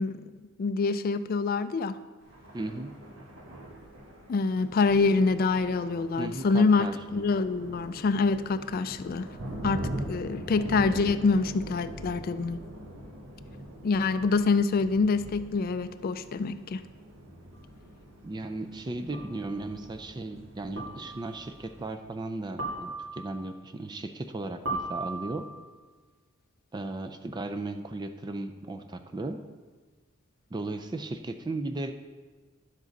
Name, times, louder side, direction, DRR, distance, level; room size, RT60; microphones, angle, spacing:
voice 1, 0.0-2.0 4.3-9.3 9.6-12.6 13.8-16.8, left 4 dB, 45° left, 12 dB, 0.3 m, -26 dB
Thunder, 2.2-21.9, equal, 65° right, 1.6 m, -42 dB
voice 2, 2.5-2.9 6.2-7.2 18.2-25.5 26.7-29.4 30.5-31.9, right 2 dB, 20° right, 7 dB, 0.4 m, -36 dB
sound 1, 17.5-17.6 19.1-19.5 20.8-21.3 22.6-23.4 24.7-25.6, right 2 dB, 80° right, 2.5 m, -36 dB
10.5 x 7.4 x 4.0 m, 1.3 s
head